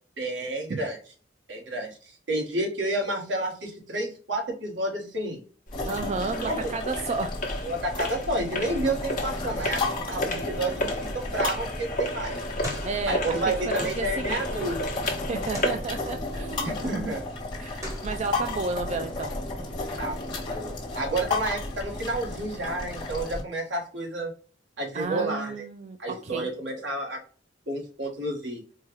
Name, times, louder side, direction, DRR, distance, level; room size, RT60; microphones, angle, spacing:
voice 1, 0.2-1.0 1.5-5.4 6.4-6.7 7.6-12.4 13.1-14.8 16.6-17.2 20.0-24.3 24.8-25.7 26.0-27.2 27.7-28.6, right 1 dB, 75° right, 0 dB, 1.4 m, -30 dB
sound 1, 5.7-15.9, left 1 dB, 45° left, 1.0 m, -33 dB
sound 2, 5.7-23.4, left 2 dB, 25° left, 1.3 m, -33 dB
voice 2, 5.8-7.3 12.8-13.4 13.7-14.5 15.3-16.9 17.6-19.3 24.9-26.5, right 4 dB, 35° right, 6 dB, 0.3 m, -32 dB
sound 3, 10.4-22.4, left 1 dB, 15° right, 1.1 m, -45 dB
4.5 x 2.3 x 3.0 m, 0.40 s
head